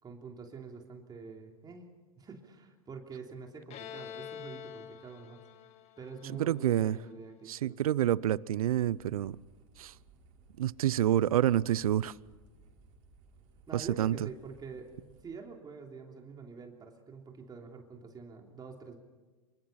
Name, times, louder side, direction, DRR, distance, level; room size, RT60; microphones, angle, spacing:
voice 1, 0.0-1.9 2.2-5.4 6.0-7.8 13.7-19.0, right 5 dB, 20° right, 3.2 m, -46 dB
Bowed string instrument, 3.7-7.3, left 9 dB, 35° left, 1.9 m, -47 dB
voice 2, 6.3-7.0 7.5-9.4 9.8-9.9 10.6-12.1 13.7-14.2, right 12 dB, 75° right, 0.6 m, -28 dB
sound 1, 8.5-15.2, right 3 dB, 60° right, 5.2 m, -60 dB
27.0 x 24.5 x 5.8 m
hypercardioid pair, 105°, 18 cm